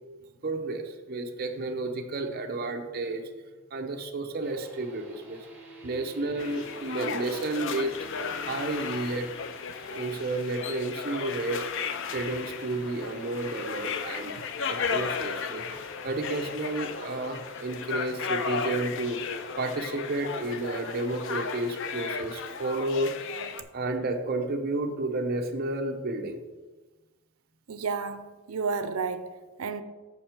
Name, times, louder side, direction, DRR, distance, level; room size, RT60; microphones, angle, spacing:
voice 1, 0.4-3.2 3.7-5.4 5.8-7.9 8.5-9.3 9.9-11.7 12.1-14.4 14.7-19.2 19.6-23.1 23.7-26.4, right 2 dB, 45° right, 0.8 m, -31 dB
sound 1, 4.4-22.2, right 3 dB, 10° right, 1.5 m, -50 dB
sound 2, 6.4-23.6, left 6 dB, 60° left, 0.5 m, -35 dB
voice 2, 27.7-29.3 29.6-29.8, right 5 dB, 80° right, 0.5 m, -31 dB
7.2 x 5.8 x 4.4 m
head